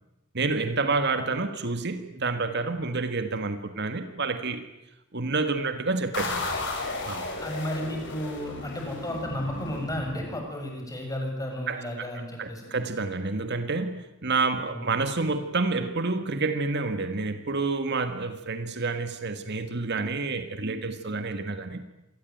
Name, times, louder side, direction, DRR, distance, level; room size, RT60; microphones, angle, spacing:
voice 1, 0.3-4.6 5.1-6.5 7.1-7.3 11.7-11.8 12.4-21.8, right 3 dB, 55° right, 9 dB, 1.7 m, -29 dB
sound 1, 6.1-10.7, left 2 dB, 60° left, 7.4 m, -34 dB
voice 2, 7.4-12.7 14.7-14.8, left 1 dB, 15° left, 2 dB, 7.1 m, -33 dB
26.5 x 20.0 x 9.3 m, 0.93 s
head